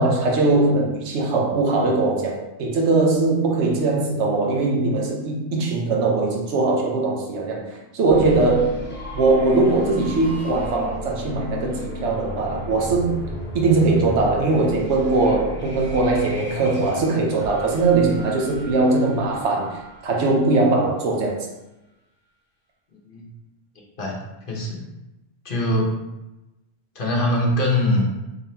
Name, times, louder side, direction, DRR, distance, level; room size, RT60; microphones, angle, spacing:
voice 1, 0.0-8.7 9.1-13.2 13.5-21.5, right 3 dB, 70° right, 0 dB, 1.1 m, -20 dB
sound 1, 8.1-20.8, left 1 dB, 10° left, 0.7 m, -34 dB
voice 2, 22.9-23.3 24.0-24.2 24.5-24.8 25.4-26.0 26.9-28.1, left 1 dB, 50° left, -2 dB, 1.0 m, -22 dB
4.0 x 3.5 x 2.8 m, 0.98 s
omnidirectional pair, 1.2 m